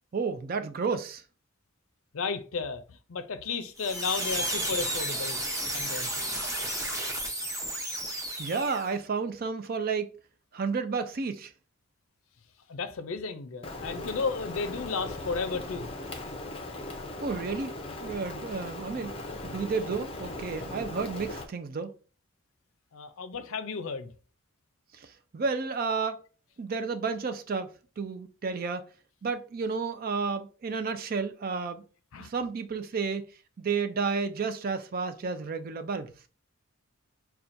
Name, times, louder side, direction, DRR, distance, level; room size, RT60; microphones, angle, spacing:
voice 1, 0.1-1.2 8.4-10.1 10.5-11.5 17.2-19.1 19.4-21.9 24.9-26.2 26.6-28.8 29.2-31.8 32.2-33.2 33.6-36.1, right 4 dB, 40° right, 0.4 m, -31 dB
voice 2, 2.1-5.4 5.7-6.1 12.7-15.9 22.9-24.1 32.1-32.3, left 4 dB, 70° left, 0.5 m, -33 dB
sound 1, 3.8-9.0, right 1 dB, 15° right, 0.8 m, -32 dB
Rain, 13.6-21.5, left 2 dB, 25° left, 0.5 m, -39 dB
5.7 x 2.3 x 2.6 m
head